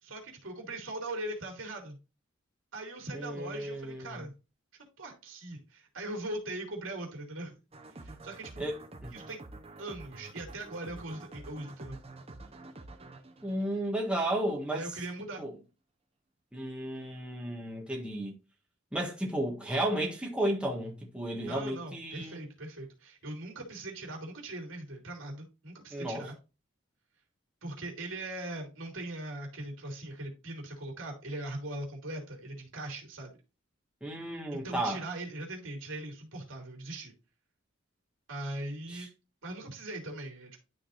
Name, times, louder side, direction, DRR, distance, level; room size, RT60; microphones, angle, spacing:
voice 1, 0.0-2.0 2.7-4.3 5.0-7.6 7.9-8.7 9.1-9.4 9.8-12.0 14.7-15.4 21.5-26.4 27.6-33.4 34.5-37.1 38.3-39.1 39.4-40.6, right 1 dB, 85° right, 2.7 m, -40 dB
voice 2, 3.1-4.2 8.6-9.2 13.4-14.8 15.4-15.5 16.5-18.3 18.9-22.4 25.9-26.2 34.0-35.0 38.9-39.1, right 1 dB, 5° right, 1.6 m, -33 dB
sound 1, 7.7-14.5, right 2 dB, 30° right, 0.9 m, -48 dB
11.5 x 3.9 x 2.6 m
head